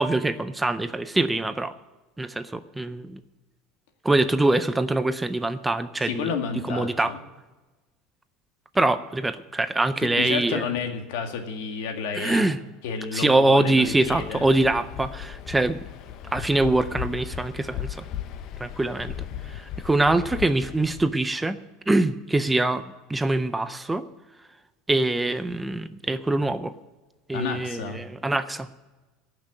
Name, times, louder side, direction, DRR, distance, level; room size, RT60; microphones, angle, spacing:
voice 1, 0.0-1.7 2.2-3.2 4.0-6.3 6.7-7.1 8.7-10.7 12.1-12.6 13.1-15.9 16.2-18.1 18.6-19.2 19.4-21.6 21.9-22.8 23.1-24.0 24.9-26.7 27.3-28.7, right 2 dB, 10° right, 12 dB, 0.5 m, -24 dB
voice 2, 6.0-7.2 10.0-12.5 12.8-14.5 27.3-28.0, left 6 dB, 80° left, 4 dB, 2.0 m, -31 dB
Waves surf, 13.8-21.1, left 10 dB, 45° left, 0.7 m, -37 dB
18.0 x 6.0 x 7.5 m, 1.2 s
cardioid pair, 150°, 0 cm